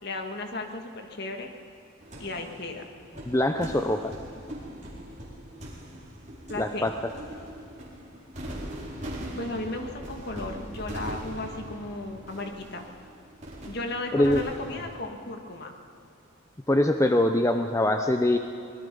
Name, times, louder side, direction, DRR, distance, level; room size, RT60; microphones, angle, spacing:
voice 1, 0.0-1.5 2.2-2.8 6.5-6.9 9.4-13.1 13.7-15.7, left 2 dB, 50° left, 4 dB, 2.1 m, -35 dB
sound 1, 2.0-15.0, equal, 35° right, 4.4 m, -41 dB
voice 2, 3.3-4.0 6.6-6.9 14.1-14.4 16.7-18.4, left 1 dB, 15° left, 6 dB, 0.6 m, -23 dB
24.5 x 20.0 x 5.5 m, 2.7 s
head